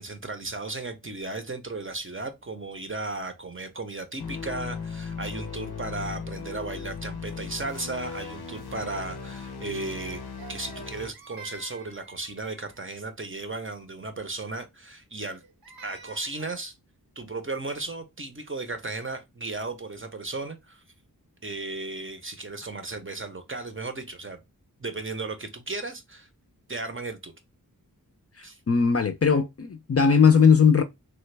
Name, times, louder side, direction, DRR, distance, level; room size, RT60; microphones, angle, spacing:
voice 1, 0.0-10.2 10.5-15.4 15.8-16.7 17.2-20.8 21.4-24.4 24.8-26.3 26.7-27.3 28.4-28.6, right 3 dB, 35° right, 0.6 m, -35 dB
sound 1, 4.2-11.1, left 5 dB, 85° left, 0.6 m, -37 dB
Crying sobbing, 10.4-12.9 15.1-16.6, right 4 dB, 75° right, 0.7 m, -48 dB
voice 2, 28.4-30.8, left 6 dB, 40° left, 0.5 m, -19 dB
3.2 x 2.2 x 3.2 m
wide cardioid pair, 65°, 37 cm